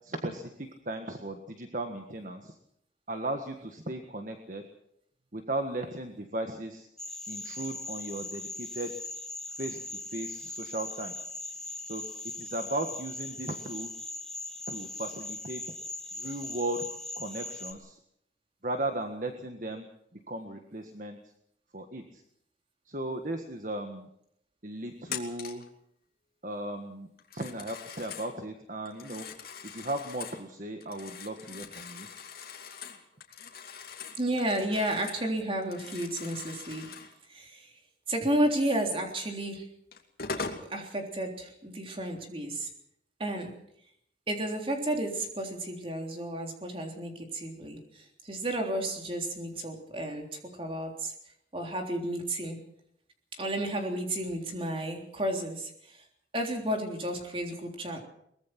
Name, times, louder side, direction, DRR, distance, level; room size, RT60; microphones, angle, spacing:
voice 1, 0.0-2.6 3.1-4.6 5.3-6.9 7.3-8.9 9.6-11.1 11.9-12.0 12.4-13.9 14.7-15.6 16.2-16.9 17.2-18.0 18.6-19.9 20.3-21.2 21.7-22.2 22.9-24.1 24.6-25.6 26.4-27.1 27.3-29.3 29.7-32.1, right 1 dB, 45° right, 5 dB, 1.6 m, -36 dB
sound 1, 7.0-17.7, left 2 dB, 5° left, 1.8 m, -40 dB
Telephone, 25.1-25.7 27.2-28.3 28.9-30.4 30.8-35.3 35.6-37.1 39.2-39.3 39.9-40.7, left 5 dB, 55° left, 2.7 m, -42 dB
voice 2, 34.1-36.9 37.3-37.7 38.1-39.7 40.4-42.7 43.2-43.5 44.3-51.1 51.5-52.6 53.3-56.0 56.3-58.0, right 1 dB, 30° right, 2 dB, 3.5 m, -32 dB
22.5 x 20.5 x 6.0 m, 0.73 s
head